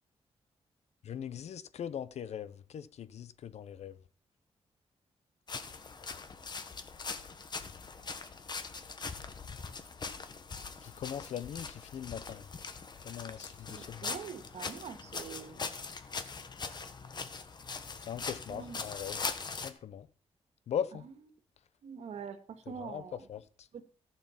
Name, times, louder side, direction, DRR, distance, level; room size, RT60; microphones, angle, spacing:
voice 1, 1.0-4.0 10.8-12.5 13.0-14.1 18.1-19.2 19.5-20.1 20.7-21.0 22.7-23.0 23.3-23.7, left 9 dB, 75° left, 0.8 m, -40 dB
sound 1, 5.5-19.7, left 4 dB, 40° left, 1.3 m, -41 dB
voice 2, 13.7-15.6 18.5-18.8 21.8-23.2 23.7-23.8, right 7 dB, 80° right, 1.8 m, -44 dB
14.0 x 7.1 x 5.8 m
wide cardioid pair, 120°, 11 cm